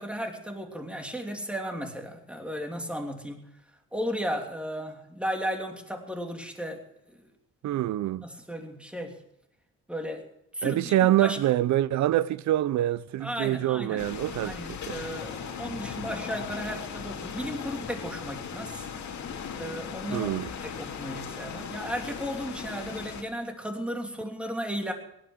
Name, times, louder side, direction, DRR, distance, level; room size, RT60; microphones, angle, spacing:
voice 1, 0.0-3.4 3.9-6.8 7.1-7.3 7.7-7.8 8.2-9.2 9.9-10.3 10.5-11.4 13.2-14.0 14.4-18.9 19.5-20.3 20.6-24.9, equal, 5° right, 3.0 m, -35 dB
voice 2, 7.6-8.3 10.6-14.6 14.9-15.0 20.1-20.5, right 13 dB, 70° right, 0.6 m, -25 dB
sound 1, 14.0-23.2, left 7 dB, 65° left, 2.4 m, -38 dB
17.5 x 12.0 x 6.4 m
cardioid pair, 90°, 30 cm